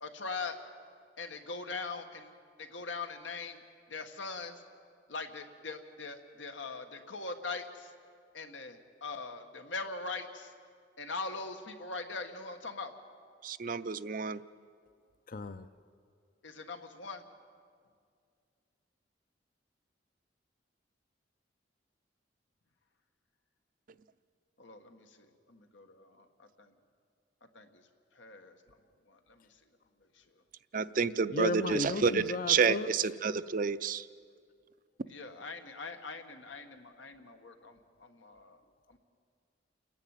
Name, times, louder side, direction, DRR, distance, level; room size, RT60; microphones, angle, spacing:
voice 1, 0.0-0.6 1.2-2.3 2.6-3.6 3.9-4.6 5.1-7.9 8.3-10.5 11.0-12.9 16.4-17.2 24.6-26.7 27.5-27.8 28.1-28.5 29.1-29.5 30.2-30.3 35.1-38.6 38.9-39.0, left 3 dB, 90° left, 6 dB, 1.6 m, -42 dB
voice 2, 13.4-14.4 30.7-34.1, right 5 dB, 45° right, 14 dB, 0.5 m, -29 dB
voice 3, 15.3-15.7 31.3-32.9, left 2 dB, 45° left, 11 dB, 0.6 m, -34 dB
28.5 x 10.5 x 9.0 m, 2.2 s
head